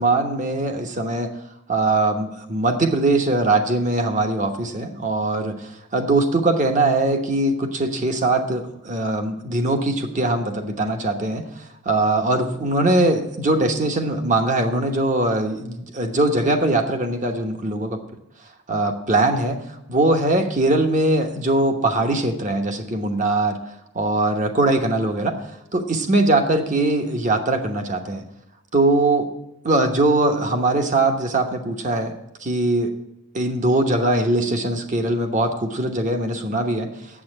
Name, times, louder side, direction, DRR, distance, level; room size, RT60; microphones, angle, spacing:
voice 1, 0.0-1.3 1.7-18.0 18.7-19.6 19.9-23.6 23.9-25.4 25.7-28.2 28.7-29.3 29.6-32.2 32.4-32.9 33.3-36.9, right 2 dB, 35° right, 6 dB, 1.1 m, -21 dB
8.7 x 7.6 x 8.6 m, 0.85 s
head